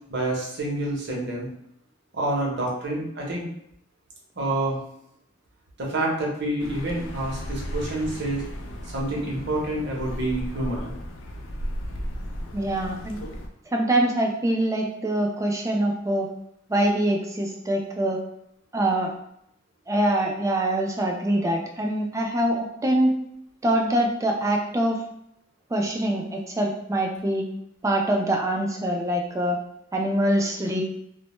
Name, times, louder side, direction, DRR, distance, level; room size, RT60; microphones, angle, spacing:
voice 1, 0.1-1.5 2.1-3.5 4.4-4.8 5.8-8.4 8.9-10.9, right 1 dB, 60° right, -2 dB, 0.7 m, -28 dB
Accelerating revving vroom, 6.6-13.5, equal, 85° left, 0.4 m, -35 dB
voice 2, 12.5-13.2 13.7-16.3 16.7-18.2 18.7-19.1 19.9-23.1 23.6-25.0 25.7-27.4 27.8-29.6 29.9-30.8, right 1 dB, 15° right, 1 dB, 0.3 m, -24 dB
2.1 x 2.1 x 2.9 m, 0.76 s
head